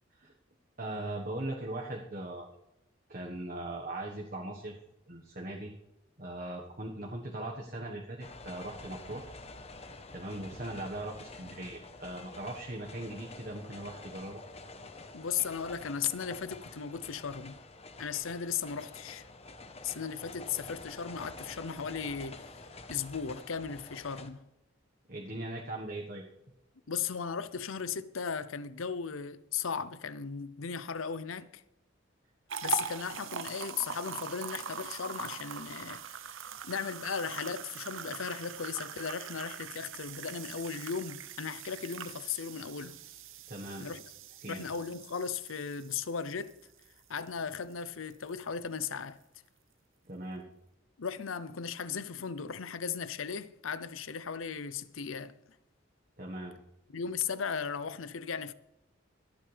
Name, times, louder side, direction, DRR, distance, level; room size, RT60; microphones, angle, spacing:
voice 1, 0.8-2.5 3.1-4.7 5.1-5.7 6.2-9.3 10.1-14.4 25.1-26.3 43.5-43.8 44.4-44.6 50.1-50.4 56.2-56.6, right 1 dB, 40° right, 1.4 m, -39 dB
sound 1, 8.2-24.3, left 2 dB, 30° left, 1.0 m, -48 dB
voice 2, 15.1-17.6 18.0-19.2 19.8-22.5 22.9-24.4 26.9-31.6 32.6-36.0 36.6-43.0 43.8-44.0 44.5-46.6 47.1-49.2 51.0-55.4 56.9-58.5, left 6 dB, 80° left, 0.7 m, -36 dB
sound 2, 32.5-47.7 48.1-48.3 48.8-48.9, right 6 dB, 80° right, 0.9 m, -42 dB
25.0 x 8.9 x 3.4 m
head